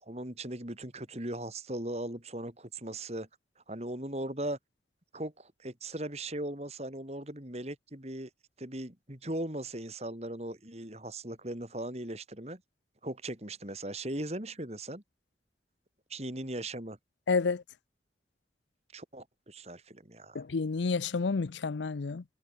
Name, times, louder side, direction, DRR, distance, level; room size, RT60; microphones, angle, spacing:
voice 1, 0.0-3.3 3.7-4.6 5.1-8.3 8.6-12.6 13.0-15.0 16.1-17.0 18.9-20.4, right 1 dB, 35° right, 3.4 m, -38 dB
voice 2, 17.3-17.6 20.3-22.2, left 4 dB, 85° left, 0.6 m, -30 dB
head